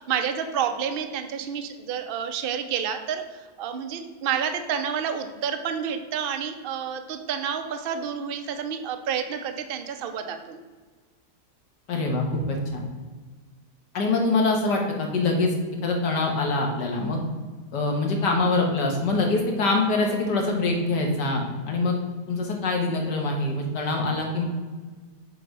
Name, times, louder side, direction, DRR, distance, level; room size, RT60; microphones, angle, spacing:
voice 1, 0.0-10.6, right 7 dB, 65° right, 7 dB, 0.5 m, -29 dB
voice 2, 11.9-12.9 13.9-15.5 15.8-17.2 17.7-22.0 22.3-24.4, left 3 dB, 90° left, 1 dB, 1.9 m, -24 dB
7.7 x 3.9 x 4.7 m, 1.4 s
omnidirectional pair, 1.8 m